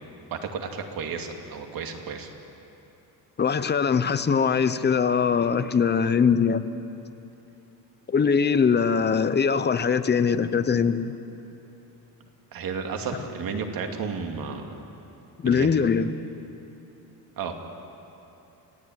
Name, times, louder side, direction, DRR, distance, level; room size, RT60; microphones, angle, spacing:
voice 1, 0.3-2.3 12.5-14.7 15.4-15.8 17.4-17.5, right 5 dB, 65° right, 4 dB, 2.7 m, -32 dB
voice 2, 3.4-6.6 8.1-11.1 15.4-16.3, left 6 dB, 25° left, 12 dB, 0.9 m, -22 dB
29.5 x 16.0 x 9.5 m, 3.0 s
cardioid pair, 140°, 38 cm